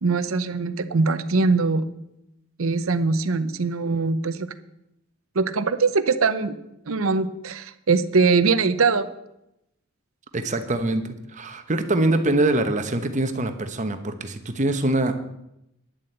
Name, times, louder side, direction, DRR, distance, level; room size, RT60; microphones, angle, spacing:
voice 1, 0.0-1.8 2.6-4.5 5.3-6.6 6.9-9.1, right 4 dB, 75° right, 12 dB, 0.8 m, -22 dB
voice 2, 10.3-11.0 11.3-15.2, right 2 dB, 35° right, 8 dB, 1.0 m, -23 dB
10.5 x 7.7 x 8.0 m, 0.83 s
head